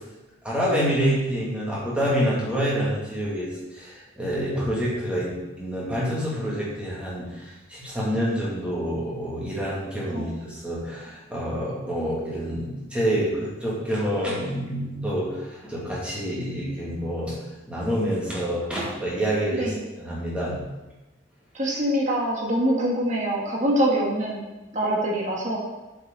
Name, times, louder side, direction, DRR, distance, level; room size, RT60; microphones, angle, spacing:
voice 1, 0.4-17.3 17.7-20.6, equal, 5° right, -7 dB, 2.4 m, -27 dB
voice 2, 21.5-24.4 24.7-25.6, right 1 dB, 40° right, -2 dB, 1.6 m, -24 dB
8.2 x 7.7 x 4.1 m, 1.1 s
head